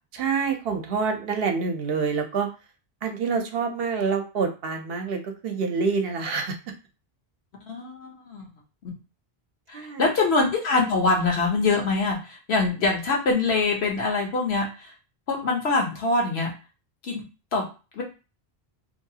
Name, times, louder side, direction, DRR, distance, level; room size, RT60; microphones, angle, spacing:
voice 1, 0.1-2.5 3.0-6.6 9.7-10.1, right 5 dB, 70° right, 4 dB, 0.8 m, -27 dB
voice 2, 7.7-8.5 8.8-8.9 9.7-14.9 15.3-16.5 17.0-17.2 17.5-17.7 17.9-18.0, left 3 dB, 80° left, 0 dB, 1.1 m, -24 dB
2.8 x 2.3 x 2.7 m, 0.31 s
omnidirectional pair, 1.1 m